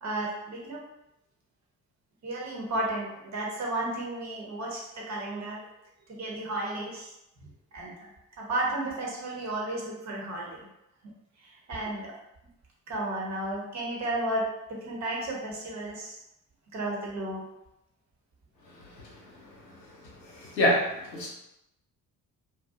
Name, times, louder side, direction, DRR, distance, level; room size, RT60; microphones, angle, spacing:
voice 1, 0.0-0.8 2.2-5.6 6.1-7.1 7.4-8.1 8.4-10.7 11.0-11.1 11.4-12.1 12.9-16.2 16.7-17.4 19.0-19.1, right 1 dB, 35° right, -2 dB, 0.8 m, -33 dB
voice 2, 20.0-21.3, left 1 dB, 90° left, -2 dB, 0.5 m, -27 dB
2.7 x 2.2 x 2.4 m, 0.87 s
figure-of-eight pair, 45°, 49 cm